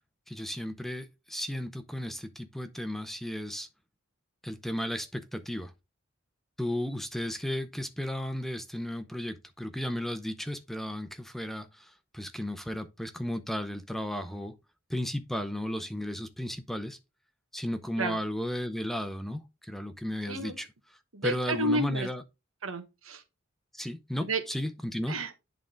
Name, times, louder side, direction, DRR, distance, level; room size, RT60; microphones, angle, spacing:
voice 1, 0.3-3.7 4.4-5.7 6.6-14.5 14.9-17.0 17.5-20.7 21.2-22.2 23.7-25.1, equal, ahead, 0.7 m, -34 dB
voice 2, 21.1-22.1 22.6-23.2 24.2-24.4 25.1-25.3, right 2 dB, 85° right, 1.5 m, -31 dB
11.0 x 3.7 x 3.8 m
head